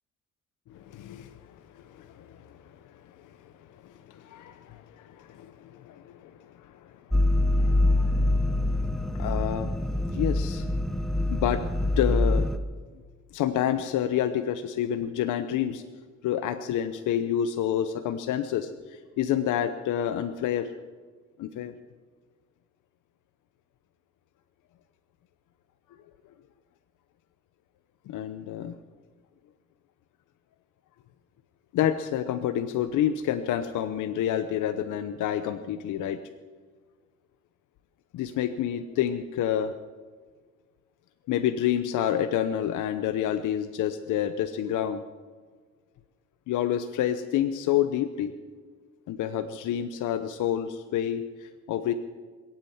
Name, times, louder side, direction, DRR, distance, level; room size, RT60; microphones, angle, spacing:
voice 1, 0.7-3.0 3.4-3.5 3.8-6.3 6.6-6.9 7.6-10.7 11.3-11.6 12.0-12.5 13.3-15.8 16.2-20.7 21.4-21.7 28.1-28.8 31.7-36.2 38.1-39.7 41.3-45.0 46.5-48.3 49.1-51.9, left 10 dB, 85° left, 9 dB, 0.9 m, -29 dB
sound 1, 7.1-12.6, left 1 dB, ahead, 1.0 m, -25 dB
22.0 x 9.0 x 7.3 m, 1.5 s
cardioid pair, 90°, 30 cm